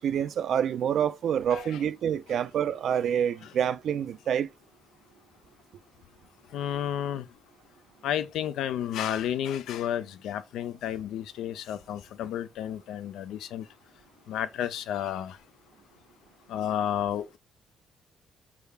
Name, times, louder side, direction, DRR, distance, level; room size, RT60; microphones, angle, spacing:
voice 1, 0.0-4.5, right 9 dB, 65° right, 0.3 m, -27 dB
voice 2, 6.5-7.3 8.0-13.7 14.3-15.4 16.5-17.4, left 10 dB, 85° left, 0.3 m, -31 dB
3.4 x 2.4 x 3.2 m
cardioid pair, 90°, 0 cm